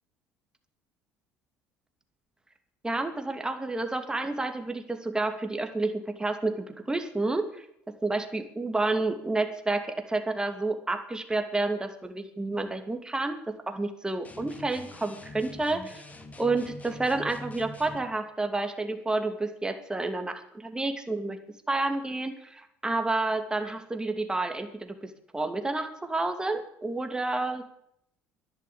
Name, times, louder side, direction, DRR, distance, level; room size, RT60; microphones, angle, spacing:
voice 1, 2.8-7.7 8.0-13.4 13.7-16.0 16.4-21.4 21.7-27.6, right 2 dB, 15° right, 6 dB, 2.6 m, -30 dB
sound 1, 14.2-18.1, left 1 dB, 25° left, 2.3 m, -44 dB
12.0 x 11.0 x 8.7 m, 0.71 s
supercardioid pair, 80°, 6 cm